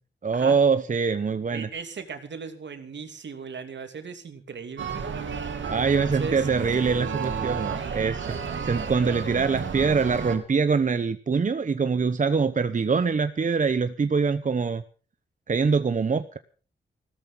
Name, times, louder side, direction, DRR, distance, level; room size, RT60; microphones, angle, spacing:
voice 1, 0.2-1.7 5.7-8.4 8.6-14.8 15.5-16.4, right 5 dB, 40° right, 11 dB, 0.9 m, -24 dB
voice 2, 1.5-5.0 5.7-6.5, right 5 dB, 70° right, 7 dB, 2.8 m, -37 dB
sound 1, 4.8-10.4, right 6 dB, 85° right, 3.0 m, -32 dB
16.0 x 13.5 x 5.6 m, 0.40 s
wide cardioid pair, 90°, 19 cm